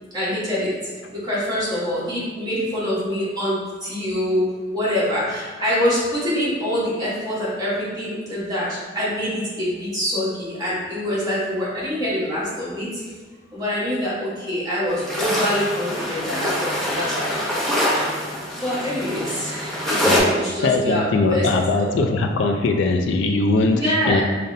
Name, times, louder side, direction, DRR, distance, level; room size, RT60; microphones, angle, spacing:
voice 1, 0.1-4.4 4.7-13.0 13.5-17.6 18.6-21.5 21.7-21.9 23.7-24.2, equal, 20° right, -9 dB, 1.2 m, -25 dB
sound 1, 14.9-20.2, equal, ahead, 0.6 m, -24 dB
voice 2, 20.6-24.2, left 3 dB, 65° left, 4 dB, 0.3 m, -20 dB
5.1 x 2.1 x 2.6 m, 1.5 s
head